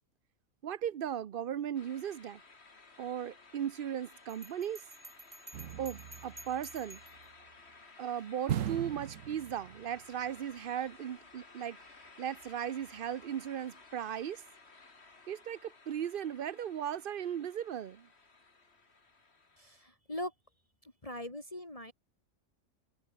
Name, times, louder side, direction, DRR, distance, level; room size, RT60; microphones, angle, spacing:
voice 1, 0.6-2.4 3.0-4.8 5.8-7.0 8.0-11.8 12.2-14.4 15.3-18.1, right 9 dB, 50° right, 0.7 m, -37 dB
sound 1, 1.7-19.9, left 3 dB, 50° left, 2.7 m, -57 dB
Bell, 4.3-7.3, right 1 dB, 30° right, 5.2 m, -52 dB
sound 2, 5.5-7.2 8.5-10.0 10.3-10.4, right 10 dB, 75° right, 1.2 m, -39 dB
voice 2, 19.6-20.3 20.8-21.9, left 1 dB, 25° left, 3.4 m, -41 dB
omnidirectional pair, 1.4 m